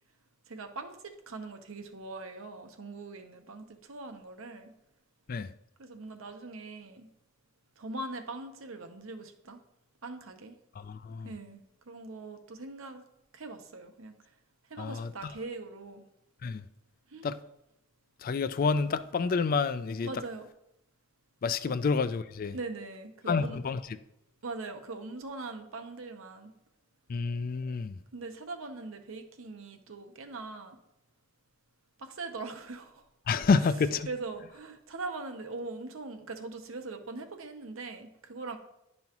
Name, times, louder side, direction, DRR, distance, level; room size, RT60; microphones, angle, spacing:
voice 1, 0.5-4.7 5.8-7.1 7.8-9.6 10.0-10.6 11.2-13.0 13.3-14.1 14.7-16.0 17.1-17.3 20.0-20.5 21.7-21.8 22.5-23.6 24.4-26.5 28.1-30.8 32.0-33.0 33.5-38.6, right 3 dB, 75° right, 0.9 m, -41 dB
voice 2, 10.8-11.3 14.8-15.1 16.4-16.6 17.2-17.4 18.2-20.1 21.4-22.6 23.3-23.8 27.1-28.0 33.3-34.1, left 4 dB, 40° left, 0.3 m, -28 dB
10.5 x 5.4 x 3.0 m
head